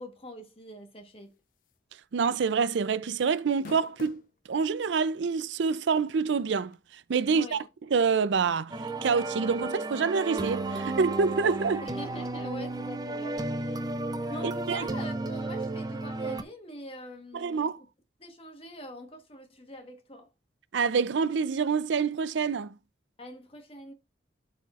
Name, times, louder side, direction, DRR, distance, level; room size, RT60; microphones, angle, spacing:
voice 1, 0.0-1.3 7.2-7.7 11.8-13.9 14.3-17.7 18.2-20.3 23.2-23.9, equal, 30° left, 1.3 m, -44 dB
sound 1, 1.7-1.9 2.3-2.4 3.4-4.3 5.1-5.2 6.7-6.8, left 4 dB, 45° left, 0.4 m, -45 dB
voice 2, 2.1-4.2 4.5-7.6 7.9-8.7 9.0-11.8 14.4-14.9 17.3-17.8 20.7-22.7, right 5 dB, 80° right, 0.5 m, -27 dB
sound 2, 8.7-16.4, right 2 dB, 20° right, 0.5 m, -33 dB
12.0 x 4.3 x 2.4 m
head